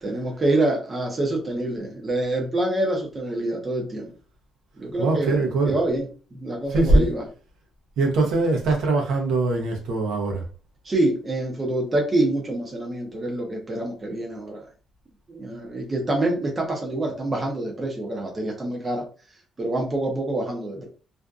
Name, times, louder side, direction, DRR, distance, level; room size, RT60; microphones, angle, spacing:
voice 1, 0.0-4.1 4.8-6.1 6.3-7.2 10.8-14.6 15.3-19.0 19.6-20.9, right 1 dB, 20° right, 0.6 m, -26 dB
voice 2, 5.0-5.7 6.7-7.1 8.0-10.4, right 2 dB, 90° right, 0.7 m, -21 dB
2.5 x 2.4 x 2.3 m
cardioid pair, 170°, 0 cm